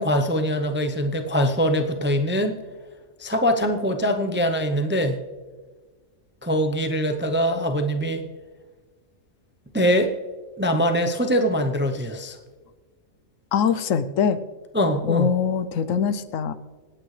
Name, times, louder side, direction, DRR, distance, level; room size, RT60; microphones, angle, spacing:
voice 1, 0.0-2.6 3.2-5.2 6.4-8.2 9.7-10.1 10.6-12.4 14.7-15.3, equal, 15° right, 6 dB, 0.5 m, -23 dB
voice 2, 13.5-14.4 15.0-16.5, left 7 dB, 75° left, 13 dB, 1.0 m, -23 dB
26.5 x 9.0 x 3.2 m, 1.4 s
omnidirectional pair, 1.4 m